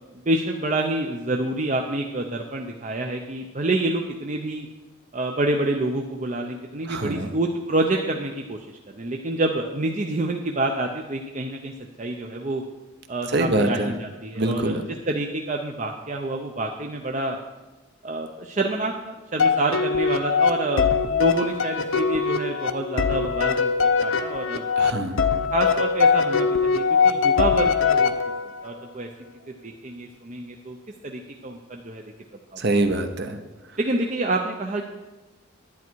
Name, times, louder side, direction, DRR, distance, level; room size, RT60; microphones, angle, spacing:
voice 1, 0.3-4.7 5.1-8.6 8.9-11.7 12.0-12.6 13.1-14.8 15.1-17.4 18.0-24.7 25.5-28.1 28.6-29.1 29.6-30.8 31.0-32.0 32.5-32.6 33.8-34.8, right 2 dB, 35° right, 2 dB, 0.6 m, -27 dB
voice 2, 6.8-7.3 13.3-13.9 14.4-14.8 24.8-25.2 32.6-33.4, right 2 dB, 50° right, 7 dB, 0.9 m, -24 dB
sound 1, 19.4-28.7, left 5 dB, 70° left, 0.7 m, -22 dB
11.0 x 9.5 x 4.6 m, 1.1 s
head